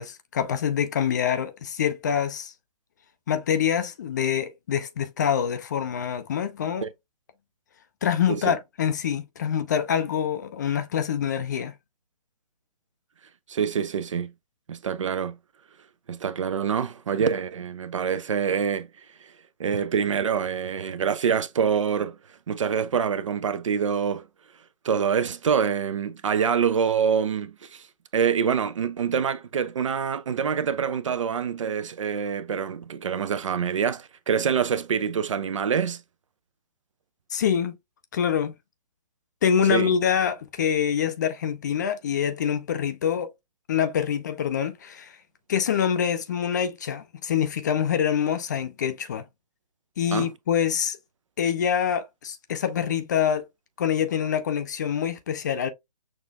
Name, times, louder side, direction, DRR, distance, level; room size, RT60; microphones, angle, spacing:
voice 1, 0.0-2.5 3.3-6.8 8.0-11.7 37.3-37.7 38.1-38.5 39.4-43.3 43.7-45.2 45.5-49.2 50.0-51.0 51.4-53.5 53.8-55.7, left 8 dB, 25° left, 0.4 m, -25 dB
voice 2, 13.5-14.3 14.7-15.4 16.1-19.3 19.6-24.3 24.8-27.9 28.1-36.0 39.7-39.9 50.1-50.3, right 7 dB, 50° right, 0.5 m, -26 dB
6.2 x 2.5 x 2.3 m
figure-of-eight pair, 135°, 21 cm